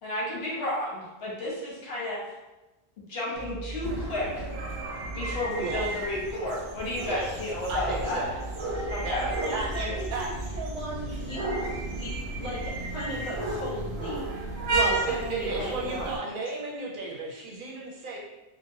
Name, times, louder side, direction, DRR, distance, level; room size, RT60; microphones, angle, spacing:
voice 1, 0.0-2.2 3.1-4.4 5.1-8.2 8.9-9.3, left 1 dB, 75° left, -6 dB, 1.1 m, -32 dB
sound 1, 3.3-5.9 7.7-11.3 12.3-14.0, right 1 dB, 25° right, 0.9 m, -40 dB
sound 2, 3.8-16.2, right 2 dB, 85° right, 0.8 m, -33 dB
voice 2, 5.6-6.1 7.1-7.2 7.7-8.3 8.7-9.2 9.5-10.5 14.8-18.2, right 3 dB, 60° right, -4 dB, 0.7 m, -34 dB
voice 3, 9.2-11.6 11.9-14.3 14.7-16.1, right 1 dB, 60° left, -5 dB, 0.9 m, -37 dB
2.8 x 2.1 x 2.7 m, 1.1 s
omnidirectional pair, 1.0 m